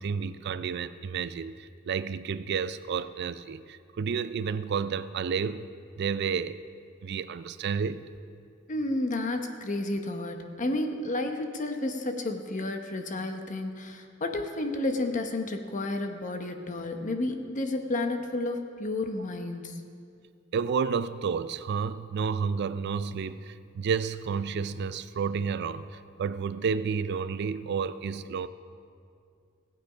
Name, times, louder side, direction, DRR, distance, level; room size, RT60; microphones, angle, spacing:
voice 1, 0.0-5.7 6.0-6.6 7.0-8.0 20.5-28.5, right 6 dB, 55° right, 14 dB, 0.4 m, -31 dB
voice 2, 8.7-19.7, left 2 dB, 40° left, 5 dB, 1.0 m, -31 dB
16.5 x 8.7 x 5.0 m, 2.4 s
head